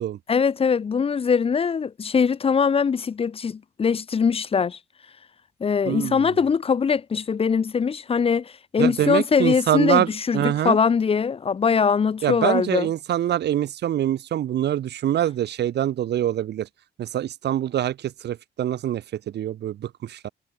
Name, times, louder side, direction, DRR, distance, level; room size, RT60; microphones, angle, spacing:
voice 1, 0.3-4.8 5.6-12.9, left 6 dB, 30° left, 0.9 m, -22 dB
voice 2, 5.8-6.4 8.8-10.8 12.2-16.7 17.0-20.3, right 11 dB, 65° right, 1.3 m, -25 dB
cardioid pair, 150°, 19 cm